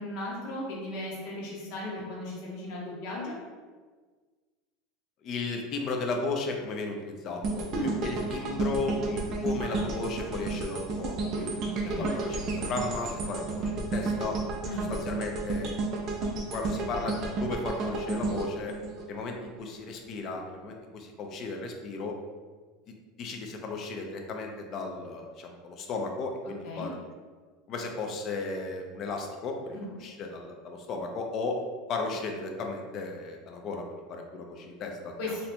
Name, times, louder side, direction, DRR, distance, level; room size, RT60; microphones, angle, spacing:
voice 1, 0.0-3.3 7.7-7.9 11.8-12.1 14.6-14.8 26.6-26.9 29.7-29.9 35.2-35.3, left 1 dB, 60° left, -4 dB, 1.1 m, -36 dB
voice 2, 5.2-11.1 11.4-14.4 14.7-15.7 16.5-18.7 19.1-22.2 23.2-27.0 27.7-31.6 31.9-35.4, left 3 dB, 40° left, 2 dB, 0.5 m, -35 dB
sound 1, 7.4-19.6 20.0-20.2, right 3 dB, 40° right, 0.5 m, -32 dB
4.2 x 2.7 x 2.2 m, 1.5 s
supercardioid pair, 145°, 0 cm